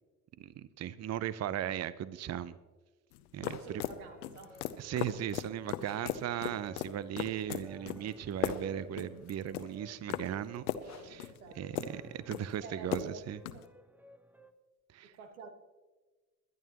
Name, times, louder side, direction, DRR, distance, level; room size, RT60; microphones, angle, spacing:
voice 1, 0.4-2.6 3.3-3.8 4.8-13.4 14.9-15.1, right 10 dB, 35° right, 0.7 m, -37 dB
sound 1, 3.1-13.6, left 11 dB, 85° left, 0.7 m, -38 dB
sound 2, 3.4-13.2, left 6 dB, 35° left, 1.3 m, -58 dB
voice 2, 3.4-4.7 11.4-12.0 12.6-13.3 13.5-13.7 15.0-15.5, right 4 dB, 85° right, 1.5 m, -49 dB
sound 3, 3.6-14.5, right 1 dB, 5° right, 1.0 m, -57 dB
21.0 x 11.0 x 3.0 m
hypercardioid pair, 55°, 44 cm